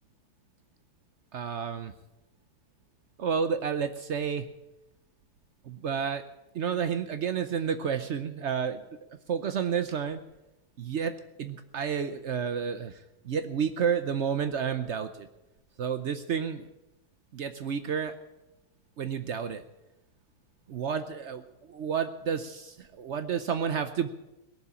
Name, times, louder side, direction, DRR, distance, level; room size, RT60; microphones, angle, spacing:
voice 1, 1.3-1.9 3.2-4.5 5.6-6.2 6.5-8.8 9.1-10.2 10.8-11.1 11.4-15.3 15.8-16.7 17.3-18.1 19.0-19.6 20.7-24.1, right 7 dB, 85° right, 10 dB, 0.6 m, -30 dB
18.5 x 7.3 x 9.7 m, 0.95 s
omnidirectional pair, 2.2 m